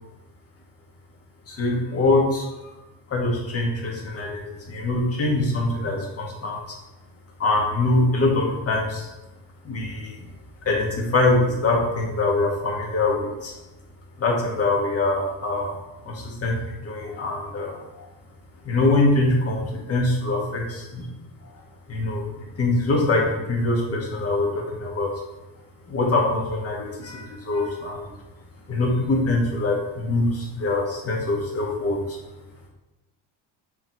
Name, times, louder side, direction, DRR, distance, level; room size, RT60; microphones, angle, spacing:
voice 1, 1.5-2.5 3.1-6.5 7.4-9.1 9.7-10.1 10.7-13.5 14.2-15.7 16.1-16.5 16.8-17.7 18.7-19.6 19.9-21.1 21.9-22.2 22.6-25.1 25.9-28.1 28.7-32.0, left 2 dB, 35° left, -2 dB, 1.9 m, -23 dB
7.0 x 4.8 x 4.2 m, 1.0 s
cardioid pair, 145°, 41 cm